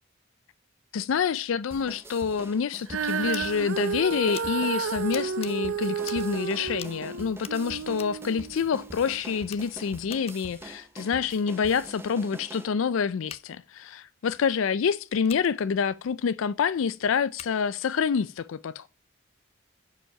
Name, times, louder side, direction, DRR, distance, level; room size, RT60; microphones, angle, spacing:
voice 1, 0.9-18.9, left 6 dB, 80° left, 0.4 m, -27 dB
sound 1, 1.7-12.7, right 1 dB, 10° right, 0.7 m, -45 dB
Female singing, 2.9-9.2 9.9-10.0, right 6 dB, 80° right, 0.6 m, -32 dB
Scissors, 3.3-3.4 4.3-4.5 5.1-5.5 6.0-6.3 6.7-7.0 7.4-8.2 8.9-9.1 9.4-10.5 13.2-13.4 15.2-15.5 17.3-17.6, left 9 dB, 30° left, 0.6 m, -44 dB
11.0 x 5.3 x 5.7 m
head